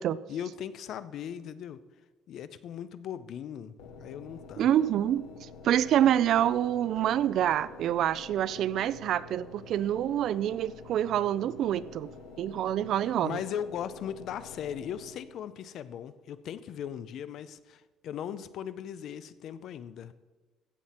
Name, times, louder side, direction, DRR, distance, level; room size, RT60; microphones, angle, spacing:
voice 1, 0.3-1.8 2.3-4.7 13.2-20.1, left 9 dB, 50° left, 14 dB, 0.5 m, -38 dB
sound 1, 3.8-15.5, left 4 dB, 75° left, 1.0 m, -48 dB
voice 2, 4.6-5.2 5.6-12.1 12.4-13.4, right 11 dB, 50° right, 19 dB, 0.3 m, -26 dB
15.5 x 7.6 x 4.3 m, 1.3 s
cardioid pair, 170°, 0 cm